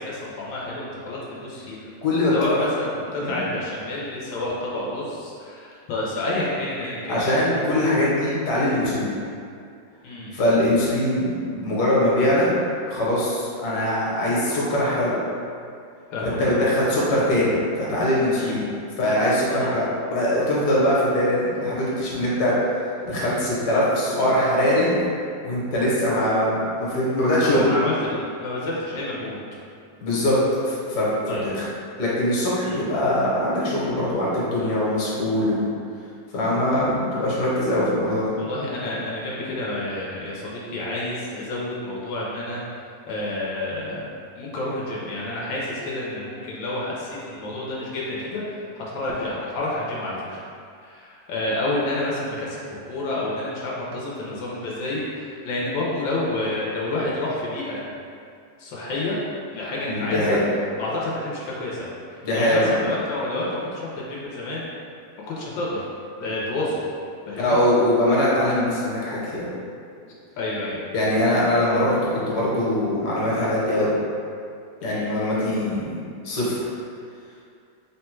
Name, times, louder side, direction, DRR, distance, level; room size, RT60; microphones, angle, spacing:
voice 1, 0.0-1.9 2.3-7.2 10.0-10.3 16.1-16.6 18.4-18.6 19.5-19.7 27.4-29.4 31.3-31.4 32.6-32.8 38.4-42.6 43.1-44.1 44.4-48.4 48.7-50.4 50.8-52.6 52.9-57.8 58.6-59.2 59.5-60.4 60.8-64.6 65.3-65.9 66.2-66.8 67.3-67.6 70.4-70.8 74.8-75.1, left 2 dB, 90° left, -5 dB, 1.4 m, -29 dB
voice 2, 2.0-2.6 3.2-3.4 7.1-9.1 10.3-12.5 12.9-15.2 16.2-18.6 19.0-22.5 23.0-25.0 25.4-27.7 30.0-30.4 30.6-31.6 32.0-35.6 36.3-38.3 59.9-60.4 62.2-62.8 67.4-69.5 70.9-73.9 74.8-76.6, left 1 dB, 60° left, -7 dB, 1.4 m, -22 dB
3.7 x 2.2 x 4.4 m, 2.4 s
omnidirectional pair, 2.0 m